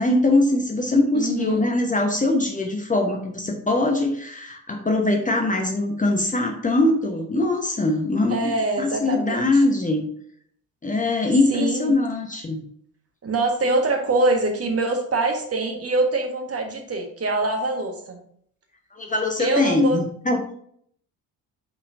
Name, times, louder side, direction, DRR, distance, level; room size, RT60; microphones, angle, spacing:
voice 1, 0.0-10.0 10.8-12.7 18.9-20.5, left 2 dB, 15° left, 2 dB, 1.1 m, -22 dB
voice 2, 1.1-1.6 8.3-9.6 11.5-11.9 13.2-18.2 19.4-20.0, right 2 dB, 30° right, 3 dB, 1.5 m, -24 dB
8.0 x 5.6 x 2.6 m, 0.64 s
figure-of-eight pair, 50°, 46 cm